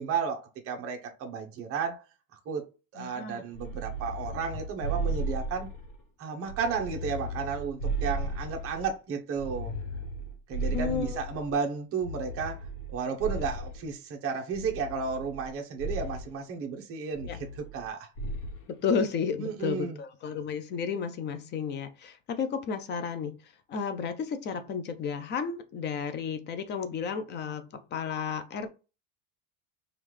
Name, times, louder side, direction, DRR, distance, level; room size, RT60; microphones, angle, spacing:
voice 1, 0.0-2.0 2.5-2.6 2.9-5.7 6.2-9.7 10.5-18.1 19.4-20.0, right 6 dB, 30° right, 0.8 m, -33 dB
voice 2, 3.0-3.4 10.7-11.2 17.3-17.4 18.7-23.4 23.7-28.7, left 6 dB, 25° left, 0.4 m, -32 dB
sound 1, 3.5-6.0 6.5-8.9 9.4-11.5 12.0-13.9 14.5-15.5 15.8-16.3 17.2-17.9 18.2-18.6, right 1 dB, 45° left, 1.2 m, -35 dB
5.4 x 2.4 x 3.2 m
supercardioid pair, 140°, 44 cm